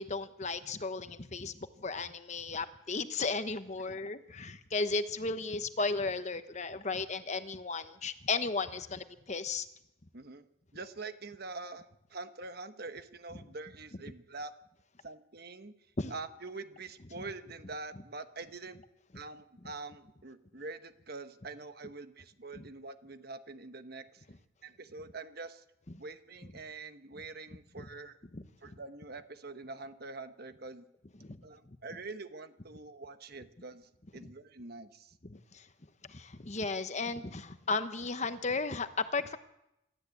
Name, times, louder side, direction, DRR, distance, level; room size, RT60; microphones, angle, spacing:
voice 1, 0.0-1.5 1.8-9.7 16.0-16.1 27.8-27.9 28.3-28.4 31.2-31.4 34.2-34.3 35.2-35.6 36.1-39.4, left 3 dB, 35° left, 10 dB, 1.0 m, -35 dB
voice 2, 10.1-10.4 10.7-14.5 15.0-15.7 16.1-18.8 19.1-24.2 24.6-25.6 26.0-28.2 28.6-30.9 31.4-35.1, right 3 dB, 50° right, 10 dB, 1.2 m, -45 dB
27.0 x 13.0 x 8.5 m, 0.86 s
head